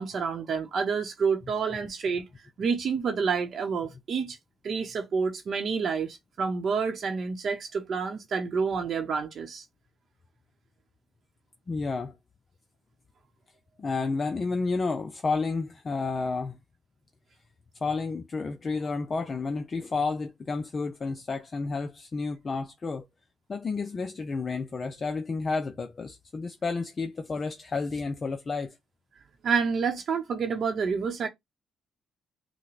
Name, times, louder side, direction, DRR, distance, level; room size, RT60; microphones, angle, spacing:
voice 1, 0.0-2.2 2.6-4.4 4.6-9.6 29.4-31.3, right 5 dB, 55° right, 0.8 m, -28 dB
voice 2, 11.7-12.2 13.8-16.6 17.8-23.1 23.5-28.8, left 4 dB, 35° left, 0.4 m, -31 dB
5.8 x 2.1 x 3.2 m
cardioid pair, 90°, 0 cm